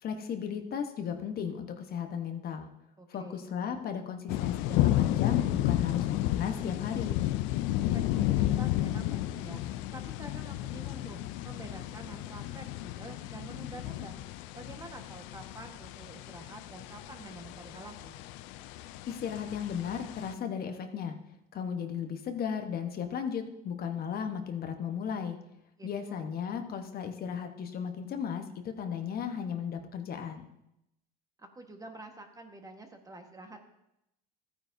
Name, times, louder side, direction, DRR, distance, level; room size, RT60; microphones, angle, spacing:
voice 1, 0.0-2.7 3.1-7.2 19.1-21.1 21.5-25.4 25.8-30.5, left 7 dB, 50° left, 5 dB, 1.1 m, -35 dB
voice 2, 3.0-3.4 7.9-14.2 14.5-18.2 25.8-26.3 31.4-33.6, right 2 dB, 15° right, 4 dB, 1.4 m, -48 dB
sound 1, 4.3-20.3, left 14 dB, 75° left, 0.5 m, -32 dB
14.0 x 9.1 x 2.7 m, 0.84 s
supercardioid pair, 90°, 20 cm